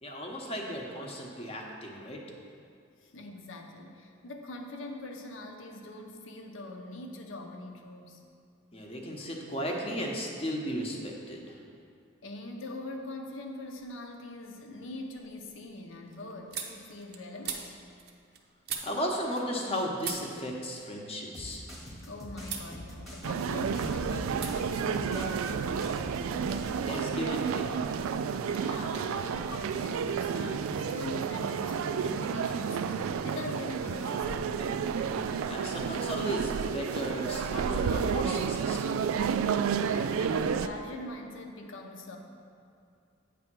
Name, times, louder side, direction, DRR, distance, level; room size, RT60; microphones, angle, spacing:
voice 1, 0.0-2.2 8.7-11.6 18.8-21.7 26.8-27.7 35.5-39.0, equal, 30° left, 0 dB, 0.8 m, -35 dB
voice 2, 3.0-8.2 12.2-17.7 22.0-25.9 28.5-34.7 39.5-42.2, left 2 dB, 70° left, 3 dB, 0.7 m, -43 dB
sound 1, 13.8-14.3 14.7-19.7 20.0-22.0 22.4-22.7 23.1-23.8 24.3-24.5 24.8-25.8, right 7 dB, 50° right, 0.6 m, -42 dB
sound 2, 21.3-26.8, equal, ahead, 1.0 m, -43 dB
sound 3, 23.2-40.7, right 6 dB, 85° right, 0.3 m, -31 dB
8.6 x 3.4 x 6.0 m, 2.4 s
head